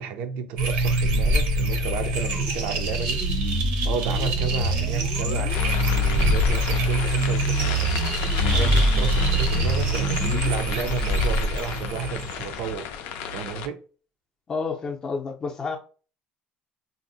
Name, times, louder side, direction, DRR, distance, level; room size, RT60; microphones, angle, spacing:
voice 1, 0.0-3.4 3.8-7.9 8.2-12.9 13.3-13.8, right 7 dB, 65° right, 0.4 m, -32 dB
sound 1, 0.6-12.5, equal, 85° right, 0.8 m, -23 dB
sound 2, 5.5-13.7, left 8 dB, 75° left, 0.4 m, -34 dB
voice 2, 14.5-15.8, left 4 dB, 20° left, 0.5 m, -29 dB
2.6 x 2.0 x 3.9 m
cardioid pair, 175°, 3 cm